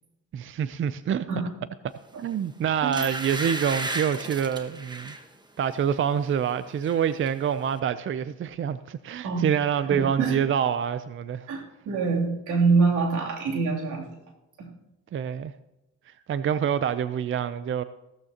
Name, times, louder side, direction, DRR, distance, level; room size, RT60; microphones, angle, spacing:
voice 1, 0.3-1.3 2.2-5.1 5.6-11.5 15.1-15.5 16.3-17.8, right 8 dB, 45° right, 0.5 m, -26 dB
sound 1, 2.2-2.4 2.9-5.2 5.7-5.9 6.3-7.0 7.3-7.4, right 2 dB, 15° right, 1.3 m, -34 dB
voice 2, 9.9-10.4 11.5-14.1 14.6-14.7, right 4 dB, 80° right, 3.0 m, -25 dB
16.5 x 13.5 x 2.9 m
cardioid pair, 90°, 30 cm